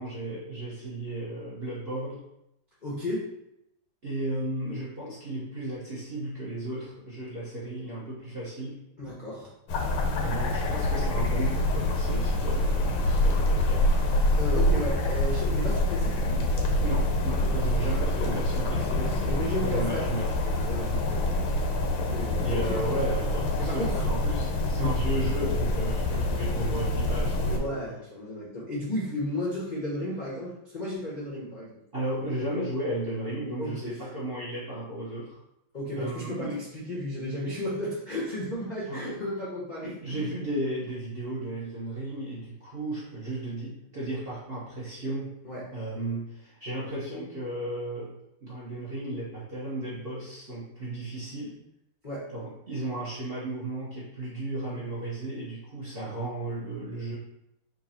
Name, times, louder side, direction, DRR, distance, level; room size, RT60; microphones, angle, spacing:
voice 1, 0.0-2.2 4.0-8.8 10.2-13.9 16.8-20.3 22.4-27.8 31.9-35.4 36.0-36.6 38.9-39.2 39.8-45.4 45.7-48.1 48.4-51.6 52.3-57.2, right 1 dB, 45° right, -8 dB, 0.7 m, -34 dB
voice 2, 2.8-3.3 9.0-9.5 14.4-16.4 17.4-18.4 19.3-20.2 20.5-21.4 22.1-22.8 23.6-24.1 24.7-25.0 27.4-31.8 33.6-34.0 35.7-40.3 45.4-45.6 52.0-52.2, left 1 dB, 70° left, -7 dB, 0.4 m, -34 dB
sound 1, 9.7-27.6, left 1 dB, 90° left, 1.6 m, -26 dB
3.8 x 2.6 x 4.2 m, 0.82 s
omnidirectional pair, 2.3 m